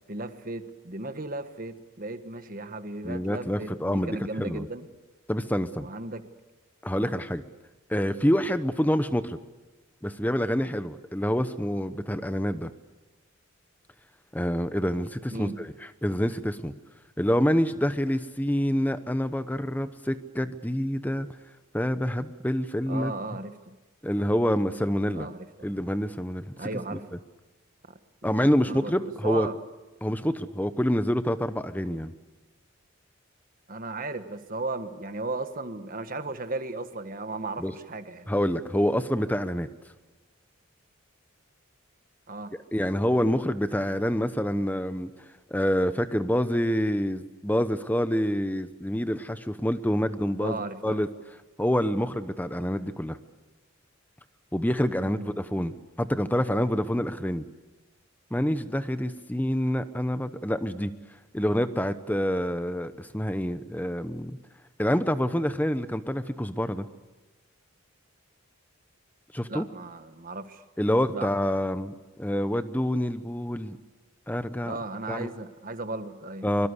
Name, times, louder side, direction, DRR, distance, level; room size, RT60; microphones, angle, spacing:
voice 1, 0.1-4.9 5.8-6.2 6.9-7.1 15.3-15.6 22.9-23.7 25.1-25.8 26.6-27.0 28.7-29.6 33.7-38.3 42.3-42.5 50.4-51.0 55.0-55.3 69.5-70.6 71.1-71.3 74.6-76.5, right 2 dB, 40° right, 9 dB, 1.4 m, -36 dB
voice 2, 3.0-4.7 5.3-5.9 6.8-7.4 7.9-9.4 10.0-12.7 14.3-16.7 17.2-21.3 21.7-23.1 24.0-25.3 25.6-26.5 26.9-27.0 28.2-29.5 30.0-32.1 37.6-37.7 38.3-39.7 42.7-45.1 45.5-51.1 51.6-53.2 54.5-57.4 58.3-60.9 61.3-64.4 64.8-66.9 69.3-69.7 70.8-73.8 74.3-74.7 75.1-75.3 76.4-76.7, equal, 10° left, 11 dB, 0.9 m, -27 dB
24.0 x 23.0 x 8.3 m, 1.1 s
head